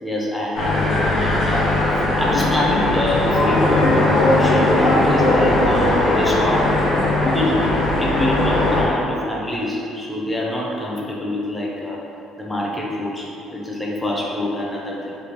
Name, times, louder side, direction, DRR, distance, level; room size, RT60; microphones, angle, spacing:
voice 1, 0.0-1.8 2.2-6.6 7.2-7.7 8.0-12.0 12.4-15.2, left 1 dB, 10° left, -4 dB, 0.6 m, -25 dB
sound 1, 0.5-8.8, left 1 dB, 80° left, 0.8 m, -18 dB
3.1 x 2.3 x 3.4 m, 2.8 s
cardioid pair, 105°, 0 cm